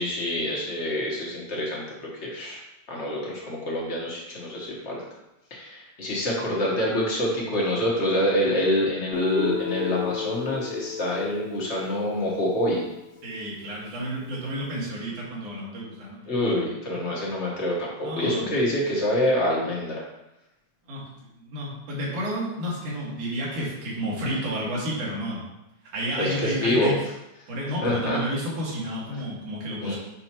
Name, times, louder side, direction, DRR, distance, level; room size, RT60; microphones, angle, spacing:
voice 1, 0.0-1.8 2.2-2.6 2.9-5.0 5.5-12.8 16.3-20.0 24.2-24.3 26.2-26.9 27.8-28.2 29.8-29.9, left 1 dB, 50° left, -4 dB, 0.8 m, -26 dB
Guitar, 9.1-13.1, left 5 dB, 70° left, 1.8 m, -32 dB
voice 2, 13.2-16.3 18.0-18.5 20.9-21.0 21.4-25.4 25.9-26.9 27.5-30.0, equal, 85° right, -5 dB, 3.4 m, -31 dB
7.5 x 5.6 x 3.0 m, 0.92 s
omnidirectional pair, 3.4 m